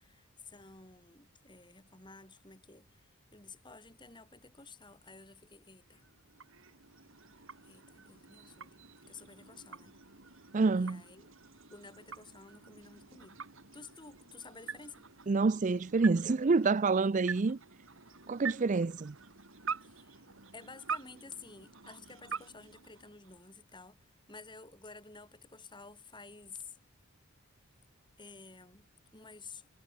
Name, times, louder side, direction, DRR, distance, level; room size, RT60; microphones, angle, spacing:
voice 1, 0.0-6.1 7.6-10.0 10.8-11.3 11.7-13.4 13.7-15.1 19.8-20.2 20.5-26.8 28.2-28.9 29.1-29.7, left 4 dB, 20° left, 5.8 m, -52 dB
sound 1, 5.8-23.6, right 6 dB, 60° right, 2.4 m, -46 dB
voice 2, 10.5-11.0 15.3-17.6 18.3-19.2, right 4 dB, 35° right, 0.4 m, -27 dB
head